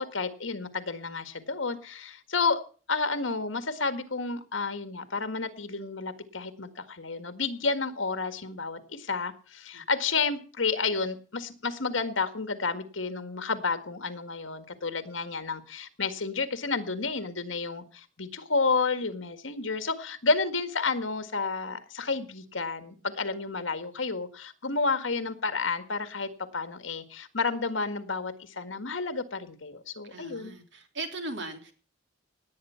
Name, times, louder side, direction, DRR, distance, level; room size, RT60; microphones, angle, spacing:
voice 1, 0.0-2.6 2.9-30.5, left 4 dB, 75° left, 10 dB, 1.8 m, -31 dB
voice 2, 30.0-31.7, right 2 dB, 65° right, 6 dB, 3.2 m, -38 dB
18.5 x 9.2 x 5.7 m, 0.40 s
head